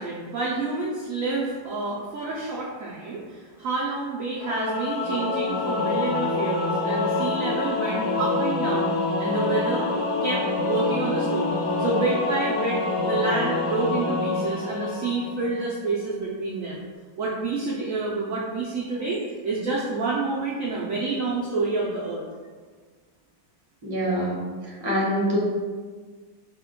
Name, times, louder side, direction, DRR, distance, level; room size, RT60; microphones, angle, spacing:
voice 1, 0.0-9.9 10.2-16.8 17.2-22.2, right 3 dB, 80° right, -5 dB, 0.7 m, -28 dB
Singing / Musical instrument, 4.4-15.7, left 3 dB, 50° left, 0.8 m, -26 dB
voice 2, 23.8-24.5 24.8-25.4, equal, 30° right, -6 dB, 0.4 m, -24 dB
5.1 x 2.2 x 3.6 m, 1.5 s
omnidirectional pair, 2.1 m